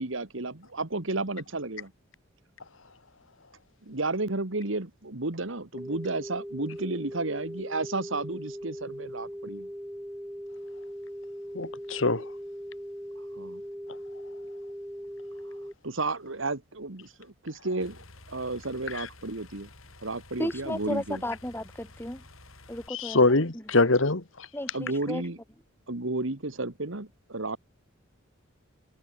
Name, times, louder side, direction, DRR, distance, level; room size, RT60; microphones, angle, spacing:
voice 1, 0.0-1.9 3.8-9.7 13.4-13.6 15.8-19.7 20.0-21.2 24.7-25.4 25.9-27.6, right 2 dB, 65° right, 1.9 m, -32 dB
sound 1, 5.7-15.7, equal, 5° right, 5.1 m, -40 dB
voice 2, 11.5-12.3 18.9-19.1 22.9-24.5, left 2 dB, 70° left, 2.0 m, -24 dB
sound 2, 17.8-22.9, left 2 dB, 90° left, 7.7 m, -51 dB
voice 3, 20.4-22.2 22.7-23.6 24.5-25.2, left 1 dB, 10° left, 3.6 m, -34 dB
head